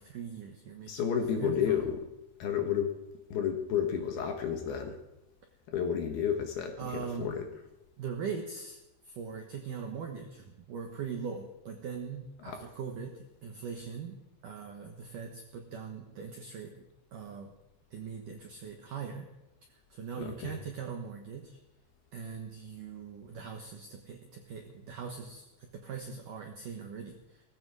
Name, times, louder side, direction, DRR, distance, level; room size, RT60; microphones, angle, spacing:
voice 1, 0.0-1.8 6.8-7.3 8.0-14.2 14.4-16.7 17.1-17.5 17.9-19.3 19.9-21.6 22.1-27.4, right 6 dB, 75° right, 3 dB, 1.9 m, -41 dB
voice 2, 0.9-2.1 2.4-2.9 3.3-5.0 5.7-7.6 12.4-12.7 20.2-20.6, left 8 dB, 65° left, 5 dB, 2.8 m, -31 dB
18.5 x 15.5 x 4.8 m, 0.95 s
omnidirectional pair, 5.6 m